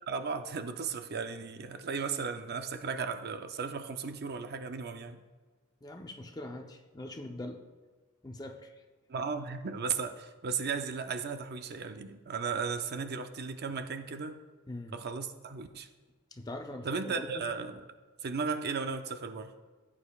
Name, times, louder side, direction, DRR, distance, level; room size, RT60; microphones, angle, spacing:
voice 1, 0.1-5.2 9.1-14.4 14.9-15.9 16.8-17.8 18.2-19.5, right 5 dB, 50° right, 8 dB, 0.6 m, -35 dB
voice 2, 5.8-7.6 8.2-8.7 14.7-15.0 16.3-17.4, left 1 dB, 20° left, 4 dB, 0.7 m, -42 dB
16.0 x 8.7 x 2.4 m, 1.4 s
head